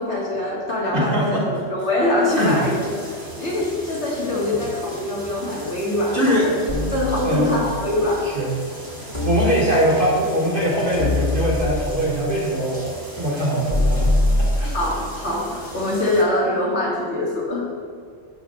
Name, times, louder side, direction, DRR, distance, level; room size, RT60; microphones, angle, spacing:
voice 1, 0.0-6.3 6.9-8.2 14.7-17.6, left 1 dB, 60° left, -5 dB, 2.6 m, -23 dB
voice 2, 0.9-1.5 2.4-2.6 6.1-6.5 7.2-7.7 8.2-8.5 9.0-14.1 14.3-14.7, equal, 40° right, -6 dB, 2.9 m, -22 dB
sound 1, 2.3-16.2, right 1 dB, 15° right, 2.0 m, -38 dB
sound 2, 6.7-7.8 9.1-10.1 11.0-12.1 13.7-15.1, left 2 dB, 30° left, 2.4 m, -23 dB
11.5 x 8.6 x 3.5 m, 2.2 s
omnidirectional pair, 1.3 m